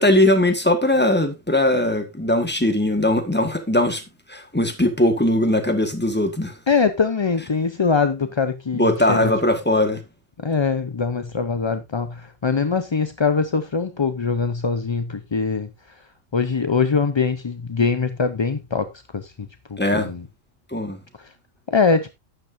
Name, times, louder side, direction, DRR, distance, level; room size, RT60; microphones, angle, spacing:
voice 1, 0.0-4.0 4.3-6.5 8.7-10.0 19.8-20.1 20.7-21.0, left 1 dB, 10° left, 1.5 m, -20 dB
voice 2, 6.7-9.3 10.4-15.7 16.3-19.3 19.7-20.3 21.2-21.3 21.7-22.1, left 5 dB, 35° left, 0.4 m, -22 dB
12.0 x 9.1 x 2.6 m
omnidirectional pair, 1.3 m